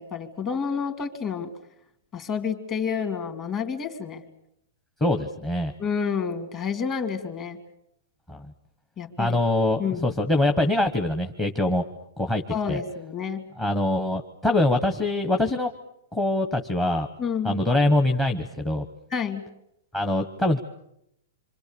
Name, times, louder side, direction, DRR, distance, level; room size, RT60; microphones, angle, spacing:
voice 1, 0.0-1.5 2.1-4.2 5.8-7.6 9.0-9.4 9.8-10.2 12.5-13.5 17.2-17.6 19.1-19.5, left 6 dB, 25° left, 8 dB, 2.5 m, -29 dB
voice 2, 5.0-5.7 8.3-8.5 9.2-11.8 12.2-12.4 12.7-12.8 13.6-15.7 16.1-17.1 17.4-18.9 19.9-20.6, left 1 dB, 10° left, 4 dB, 1.1 m, -23 dB
27.0 x 25.0 x 6.9 m, 0.79 s
hypercardioid pair, 160°, 0 cm